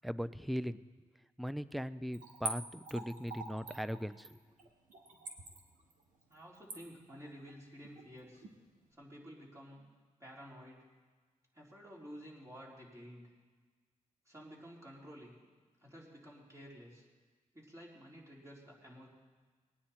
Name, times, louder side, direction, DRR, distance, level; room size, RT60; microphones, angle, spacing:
voice 1, 0.0-0.8 1.4-4.4, equal, ahead, 15 dB, 0.4 m, -39 dB
Splash splatter / Trickle dribble, 2.1-8.5 8.9-9.0, right 3 dB, 90° right, 1.7 m, -45 dB
voice 2, 6.3-8.4 8.9-9.8 10.2-10.8 11.5-13.3 14.3-15.4 15.8-17.0 17.5-19.1, equal, 25° right, -4 dB, 3.9 m, -52 dB
20.5 x 9.5 x 4.4 m, 1.4 s
cardioid pair, 80°, 13 cm